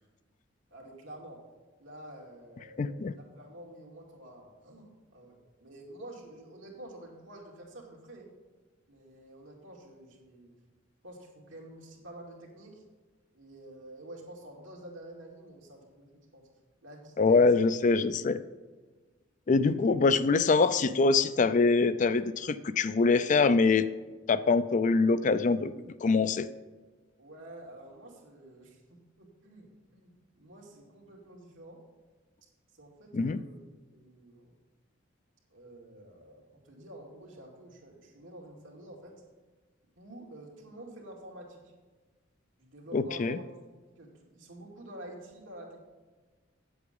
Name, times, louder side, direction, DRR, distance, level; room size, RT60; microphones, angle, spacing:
voice 1, 0.7-1.4 1.8-8.3 8.9-10.5 11.0-12.8 13.3-16.5 16.8-17.6 27.2-31.8 32.8-33.6 33.9-34.5 35.5-39.1 40.0-41.6 42.6-43.4 44.0-45.8, right 1 dB, 85° right, -2 dB, 2.5 m, -49 dB
voice 2, 2.8-3.1 17.2-18.4 19.5-23.9 24.3-25.7 26.0-26.5 33.1-33.4 42.9-43.4, left 4 dB, 40° left, 13 dB, 0.4 m, -24 dB
8.8 x 7.9 x 5.3 m, 1.3 s
head